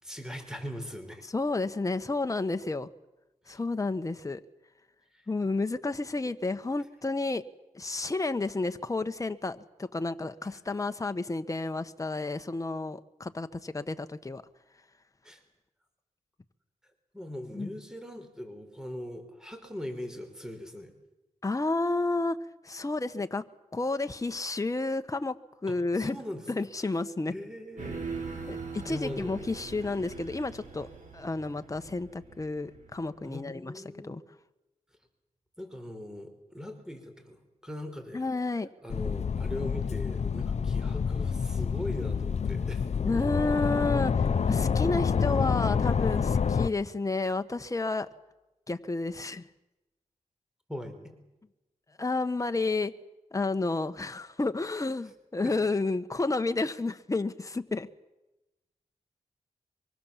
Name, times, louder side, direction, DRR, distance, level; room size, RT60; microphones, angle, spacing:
voice 1, 0.0-1.2 5.1-5.2 10.5-10.6 15.2-15.4 17.1-20.9 25.7-26.4 26.8-26.9 27.3-28.1 28.8-29.4 33.2-34.2 35.6-38.3 38.8-42.9 50.7-51.1 55.4-55.5, left 1 dB, 5° right, 6 dB, 5.0 m, -40 dB
voice 2, 1.3-2.9 3.5-4.4 5.3-7.4 7.7-14.4 17.5-17.7 21.4-22.4 22.6-23.4 23.7-25.4 25.6-26.2 26.5-27.3 28.5-30.9 31.1-33.7 34.1-34.2 38.1-38.7 43.0-48.1 48.7-49.4 52.0-52.9 53.3-57.9, left 3 dB, 25° left, 9 dB, 1.3 m, -31 dB
sound 1, 27.8-33.2, right 4 dB, 75° right, 7.8 m, -41 dB
sound 2, 38.9-46.7, left 6 dB, 60° left, 0.7 m, -28 dB
24.0 x 24.0 x 7.5 m, 1.0 s
cardioid pair, 55°, 13 cm